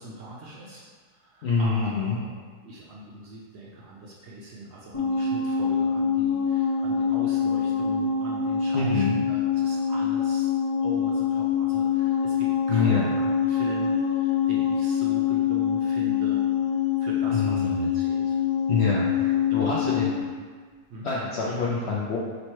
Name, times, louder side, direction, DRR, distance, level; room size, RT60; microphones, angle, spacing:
voice 1, 0.0-2.3 2.6-10.5 10.8-16.4 16.7-18.4 19.5-20.2 20.9-21.1, right 1 dB, 70° right, -4 dB, 0.6 m, -40 dB
voice 2, 1.4-2.2 8.7-9.2 12.7-13.0 17.3-17.9 18.7-20.1 21.0-22.2, left 4 dB, 90° left, -5 dB, 0.5 m, -26 dB
sound 1, 4.9-20.3, left 7 dB, 35° left, 0.6 m, -25 dB
3.1 x 3.1 x 4.2 m, 1.5 s
omnidirectional pair, 1.7 m